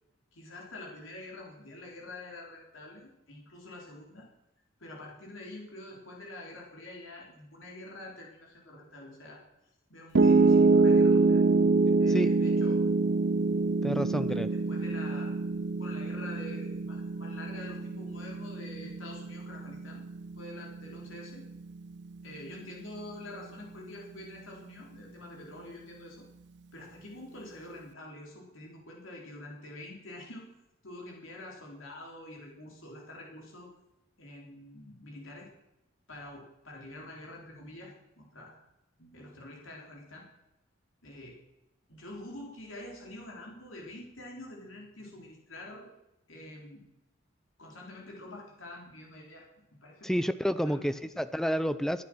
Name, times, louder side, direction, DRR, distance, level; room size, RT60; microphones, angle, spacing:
voice 1, 0.3-4.3 4.8-9.4 9.9-11.4 12.0-12.8 13.8-15.3 15.8-20.0 20.4-21.5 22.2-26.2 26.7-30.5 30.8-33.7 34.2-35.5 36.1-38.6 39.0-40.3 41.0-41.4 41.9-45.9 46.3-46.8 47.6-50.1 50.6-51.0, left 1 dB, 90° left, -1 dB, 3.9 m, -46 dB
Piano, 10.1-22.3, right 3 dB, 55° right, 0.6 m, -26 dB
voice 2, 13.8-14.5 50.0-52.0, equal, ahead, 13 dB, 0.5 m, -30 dB
25.0 x 8.6 x 6.2 m, 0.94 s
head